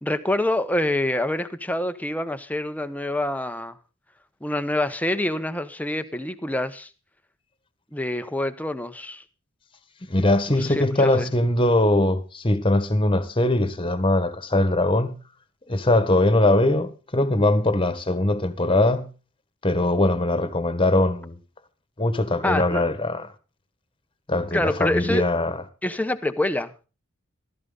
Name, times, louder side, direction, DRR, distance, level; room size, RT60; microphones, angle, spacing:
voice 1, 0.0-3.8 4.4-6.9 7.9-9.2 10.8-11.3 22.4-22.8 24.5-25.3 25.8-26.7, left 1 dB, 10° left, 1.1 m, -26 dB
voice 2, 10.0-15.2 15.7-19.1 19.6-21.4 22.0-23.3 24.3-25.6, left 1 dB, 25° left, 1.6 m, -21 dB
15.0 x 13.5 x 4.0 m
head